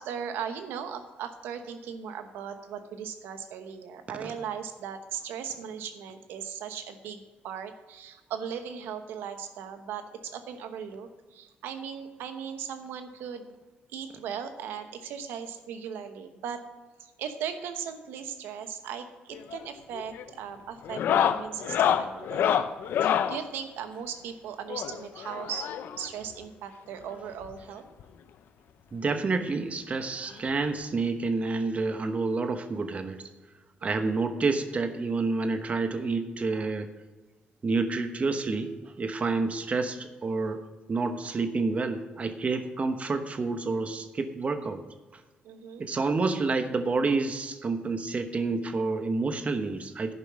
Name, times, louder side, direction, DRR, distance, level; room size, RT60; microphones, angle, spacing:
voice 1, 0.0-13.5 13.9-16.6 17.0-22.7 23.0-25.7 26.0-27.8 33.8-34.2 36.5-36.7 45.4-45.9, right 7 dB, 85° right, 8 dB, 1.0 m, -38 dB
sound 1, 19.3-19.7 19.9-20.3 20.8-23.4 24.7-26.1 27.1-27.2 27.4-27.6 28.0-28.1 29.4-29.5 30.8-30.9, left 9 dB, 75° left, 0.6 m, -27 dB
voice 2, 28.9-33.2 33.8-36.9 37.6-40.6 40.9-44.8 45.8-50.1, right 3 dB, 40° right, 8 dB, 1.1 m, -29 dB
10.5 x 5.5 x 7.4 m, 1.3 s
cardioid pair, 80°, 4 cm